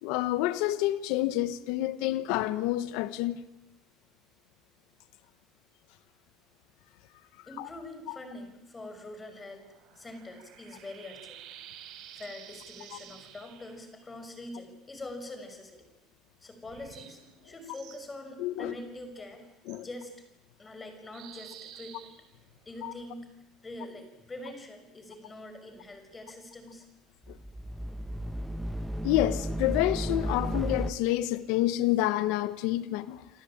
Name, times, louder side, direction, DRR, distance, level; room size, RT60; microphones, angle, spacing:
voice 1, 0.0-3.4 7.6-7.7 18.4-18.7 19.7-19.9 22.8-22.9 27.3-27.4 29.0-33.4, left 15 dB, 85° left, 1.3 m, -28 dB
voice 2, 7.5-9.7 10.0-11.4 12.1-15.8 16.4-20.1 20.6-22.2 22.7-23.3 23.6-26.9, left 1 dB, 15° left, 5.7 m, -44 dB
sound 1, 9.3-13.8 16.6-18.0 19.7-19.8 21.1-23.0, right 11 dB, 60° right, 4.5 m, -50 dB
sound 2, 27.2-30.9, equal, 5° right, 1.1 m, -33 dB
29.0 x 23.5 x 8.8 m
cardioid pair, 155°, 0 cm